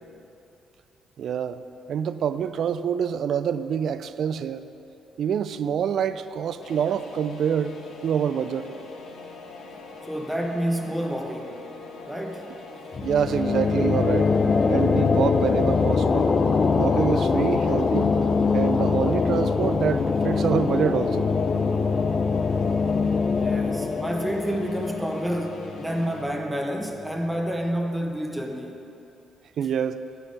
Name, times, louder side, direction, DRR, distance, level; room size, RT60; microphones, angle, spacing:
voice 1, 1.2-1.6 1.9-4.6 5.2-8.7 13.0-14.3 14.7-16.3 16.7-18.2 18.5-21.3 29.6-30.0, right 8 dB, 65° right, 13 dB, 0.3 m, -26 dB
sound 1, 6.6-26.2, left 3 dB, 70° left, 1.0 m, -42 dB
voice 2, 10.1-11.7 12.0-12.5 23.3-28.9, equal, 5° right, 2 dB, 0.9 m, -29 dB
sound 2, 12.9-26.3, left 4 dB, 40° left, 0.4 m, -23 dB
10.0 x 6.3 x 5.1 m, 2.8 s
cardioid pair, 90°, 0 cm